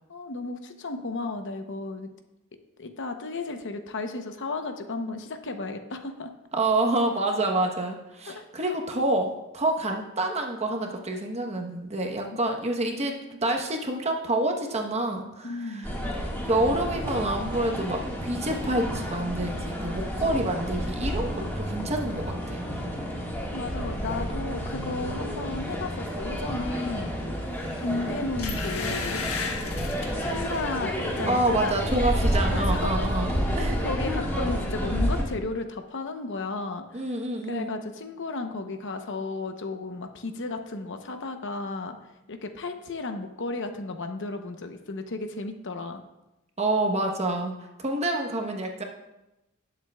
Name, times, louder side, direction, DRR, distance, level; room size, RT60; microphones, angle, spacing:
voice 1, 0.1-2.1 2.8-6.3 8.3-8.7 15.4-16.0 23.2-23.3 23.5-27.2 27.8-29.3 30.2-31.8 32.5-33.1 33.4-37.0 37.5-42.0 42.3-46.0, left 3 dB, 60° left, 6 dB, 0.9 m, -34 dB
voice 2, 6.5-13.1 13.4-15.9 16.5-22.6 31.3-33.8 36.9-37.7 46.6-48.8, right 2 dB, 30° right, 2 dB, 1.1 m, -27 dB
sound 1, 15.8-35.2, equal, 10° left, 1.8 m, -30 dB
sound 2, 27.7-27.9 28.4-30.7 31.2-31.4 31.7-32.4 32.7-32.8, left 5 dB, 80° left, 1.4 m, -35 dB
19.0 x 7.4 x 2.4 m, 0.96 s
head